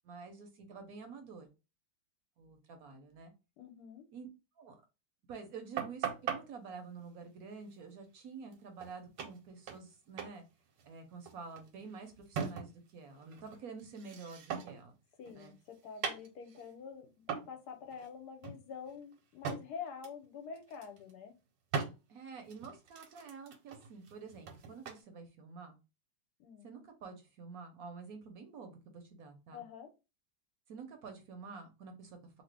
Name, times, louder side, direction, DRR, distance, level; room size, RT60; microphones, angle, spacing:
voice 1, 0.0-1.5 2.4-3.3 4.1-4.3 4.6-4.7 5.3-10.4 10.8-14.9 15.3-15.5 22.1-25.8 26.6-29.6 30.7-32.4, right 5 dB, 65° right, 1.0 m, -49 dB
voice 2, 3.6-4.1 15.2-21.3 26.4-26.7 29.5-29.9, left 6 dB, 70° left, 1.1 m, -47 dB
sound 1, 5.8-6.4 8.5-8.6 8.8-8.9 9.2-9.9 10.2-10.4 10.7-12.9 13.2-14.9 15.2-16.7 17.3-17.6 17.9-18.1 18.4-19.6 20.0-20.2 20.6-21.1 21.7-21.9 22.5-25.0, right 6 dB, 85° right, 1.4 m, -40 dB
2.9 x 2.7 x 3.2 m
omnidirectional pair, 1.9 m